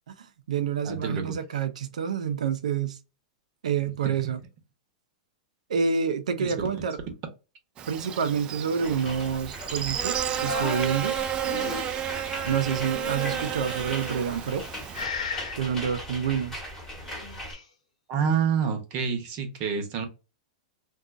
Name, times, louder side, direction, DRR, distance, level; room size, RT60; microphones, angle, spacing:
voice 1, 0.2-3.0 3.6-4.4 5.7-7.0 7.9-11.2 12.4-14.7 15.5-16.6, right 7 dB, 85° right, 0.5 m, -28 dB
voice 2, 0.8-1.3 4.0-4.3 6.4-6.8 18.1-20.1, right 6 dB, 40° right, 0.8 m, -28 dB
Buzz, 7.8-15.1, right 10 dB, 25° right, 0.3 m, -32 dB
sound 1, 8.8-17.5, equal, 10° left, 1.1 m, -40 dB
sound 2, 10.3-12.1 12.9-13.7 14.4-14.7 14.9-15.6 16.9-17.6, left 4 dB, 85° left, 1.1 m, -36 dB
2.6 x 2.3 x 2.5 m
hypercardioid pair, 135°, 4 cm